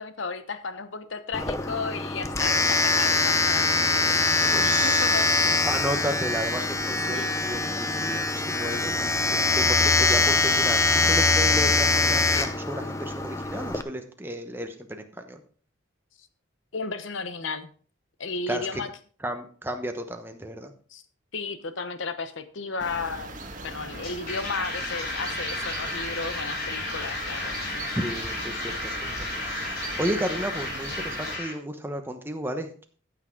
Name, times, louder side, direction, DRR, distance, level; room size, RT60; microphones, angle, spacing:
voice 1, 0.0-4.4 4.8-5.3 7.1-7.3 16.7-17.7 18.2-18.9 20.9-21.0 21.3-23.3 23.6-27.9, left 4 dB, 75° left, 11 dB, 1.0 m, -34 dB
Domestic sounds home sounds, 1.3-13.8, left 3 dB, 15° left, 0.5 m, -23 dB
voice 2, 4.5-5.2 5.7-15.4 18.5-18.8 19.2-20.7 23.7-23.8 27.9-32.8, right 1 dB, 10° right, 6 dB, 1.0 m, -33 dB
sound 1, 22.8-31.4, right 2 dB, 40° right, 1.7 m, -39 dB
sound 2, 23.9-31.5, left 2 dB, 50° left, 3.4 m, -33 dB
14.0 x 6.2 x 3.8 m, 0.44 s
head